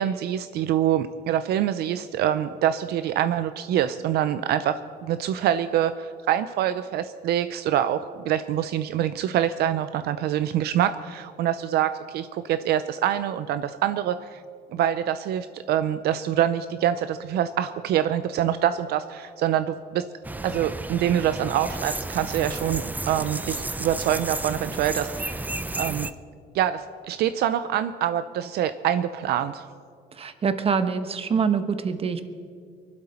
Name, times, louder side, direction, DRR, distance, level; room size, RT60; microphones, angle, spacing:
voice 1, 0.0-14.4 14.7-20.0 20.4-25.5 25.8-26.1 26.5-29.6, right 10 dB, 70° right, 11 dB, 0.6 m, -25 dB
sound 1, 20.2-26.1, right 2 dB, 10° right, 0.5 m, -32 dB
voice 2, 30.1-32.2, right 6 dB, 35° right, 10 dB, 1.1 m, -25 dB
23.0 x 12.0 x 4.4 m, 2.1 s
cardioid pair, 110°, 17 cm